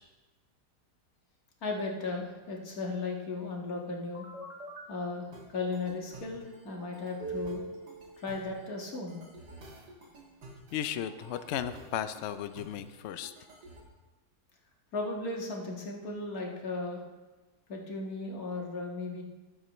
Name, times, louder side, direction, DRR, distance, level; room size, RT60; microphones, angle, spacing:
voice 1, 1.6-4.3 4.9-7.6 8.2-9.2 14.9-17.0 17.7-19.2, left 3 dB, 60° left, 0 dB, 2.1 m, -36 dB
sound 1, 4.1-4.9 5.3-13.8, right 2 dB, 90° right, 2.4 m, -46 dB
voice 2, 10.7-13.3, left 10 dB, 85° left, 11 dB, 0.6 m, -35 dB
19.0 x 7.5 x 3.1 m, 1.2 s
omnidirectional pair, 1.8 m